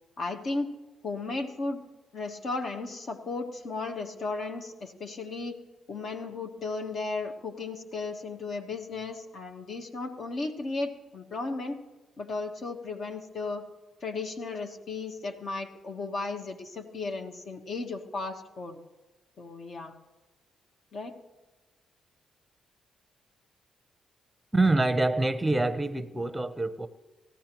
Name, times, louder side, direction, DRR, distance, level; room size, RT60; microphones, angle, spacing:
voice 1, 0.2-0.7 1.0-1.8 2.1-5.6 5.9-11.8 12.2-13.6 14.0-18.8 19.4-19.9 20.9-21.2, left 3 dB, 55° left, 5 dB, 1.2 m, -35 dB
voice 2, 24.5-26.9, right 2 dB, 10° right, 11 dB, 0.7 m, -25 dB
19.5 x 14.0 x 3.0 m, 1.1 s
cardioid pair, 90°, 0 cm